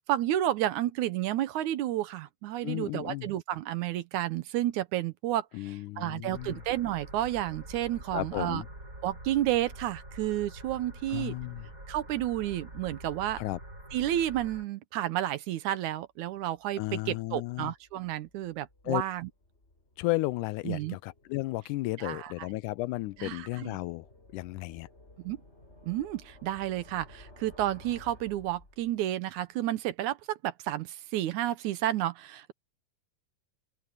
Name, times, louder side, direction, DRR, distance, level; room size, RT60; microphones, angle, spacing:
voice 1, 0.1-8.6 9.0-11.3 11.9-13.4 13.9-19.3 20.7-21.0 22.0-22.5 23.2-23.8 25.2-25.4 25.9-32.5, right 13 dB, 75° right, 2.2 m, -31 dB
voice 2, 2.6-3.3 5.5-6.6 8.1-8.7 11.1-11.7 13.4-13.6 16.8-17.7 18.9-19.0 20.0-24.1 24.3-24.9, left 20 dB, 80° left, 2.0 m, -33 dB
sound 1, 6.3-14.7, right 1 dB, 25° right, 8.1 m, -46 dB
sound 2, 16.3-29.2, left 1 dB, 20° left, 4.8 m, -56 dB
open air
omnidirectional pair, 3.7 m